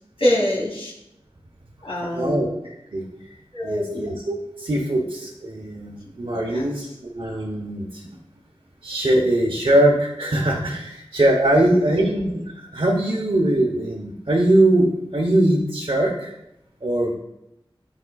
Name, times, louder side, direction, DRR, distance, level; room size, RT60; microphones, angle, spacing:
voice 1, 0.2-0.9 1.8-2.5 3.5-4.0 6.5-6.7, left 1 dB, 85° left, -6 dB, 2.3 m, -24 dB
voice 2, 2.1-2.5 2.9-3.0 3.6-8.0 8.8-16.3 16.8-17.2, right 1 dB, 65° right, -2 dB, 0.9 m, -21 dB
9.7 x 5.2 x 2.3 m, 0.85 s
wide cardioid pair, 50°, 9 cm